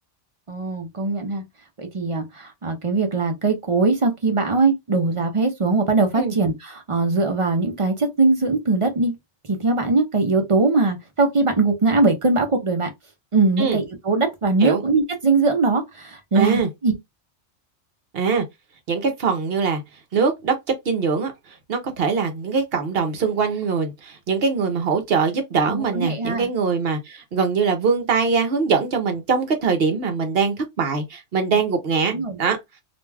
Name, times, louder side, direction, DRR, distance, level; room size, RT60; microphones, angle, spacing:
voice 1, 0.5-1.4 1.8-9.1 9.5-12.9 13.3-16.9 25.7-26.5 32.1-32.4, right 3 dB, 45° right, 0.4 m, -21 dB
voice 2, 16.3-16.7 18.1-18.4 18.9-19.8 20.1-20.6 20.9-21.3 21.7-32.1 32.4-32.6, right 5 dB, 60° right, 0.8 m, -22 dB
2.5 x 2.2 x 3.2 m
omnidirectional pair, 1.2 m